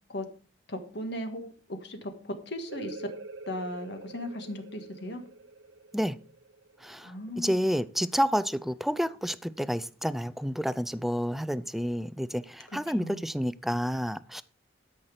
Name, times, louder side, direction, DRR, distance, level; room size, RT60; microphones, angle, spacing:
voice 1, 0.7-3.1 3.5-5.2 7.0-7.6 12.7-13.3, left 1 dB, 60° left, 1.8 m, -37 dB
sound 1, 2.7-8.1, right 3 dB, 80° right, 1.5 m, -46 dB
voice 2, 7.4-14.4, equal, ahead, 0.4 m, -29 dB
13.0 x 5.9 x 5.0 m
head